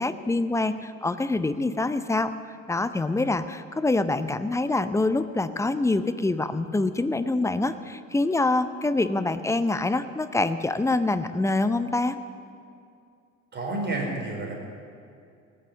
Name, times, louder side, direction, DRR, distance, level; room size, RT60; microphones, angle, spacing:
voice 1, 0.0-2.3 2.7-12.2, left 2 dB, 5° left, 12 dB, 0.7 m, -25 dB
voice 2, 13.5-14.6, right 2 dB, 25° right, 0 dB, 4.2 m, -30 dB
18.5 x 7.1 x 7.4 m, 2.5 s
hypercardioid pair, 70°, 39 cm